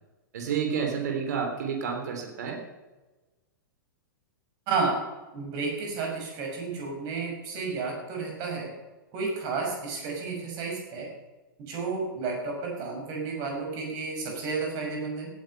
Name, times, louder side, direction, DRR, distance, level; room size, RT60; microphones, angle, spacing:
voice 1, 0.3-2.6, right 6 dB, 55° right, 3 dB, 3.5 m, -30 dB
voice 2, 5.3-8.7 9.1-11.1 11.6-15.3, right 4 dB, 35° right, 0 dB, 5.7 m, -31 dB
16.5 x 9.7 x 5.7 m, 1.2 s
figure-of-eight pair, 105°, 11 cm